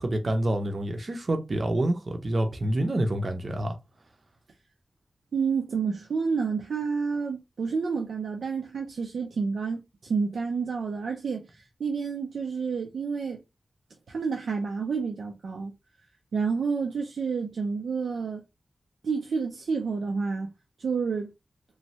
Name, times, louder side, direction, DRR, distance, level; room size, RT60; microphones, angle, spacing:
voice 1, 0.0-3.8, right 1 dB, 45° right, 0.6 m, -27 dB
voice 2, 5.3-13.4 14.1-15.7 16.3-18.4 19.0-20.5 20.8-21.3, right 5 dB, 90° right, 0.5 m, -29 dB
3.1 x 2.2 x 2.7 m
wide cardioid pair, 90°, 0 cm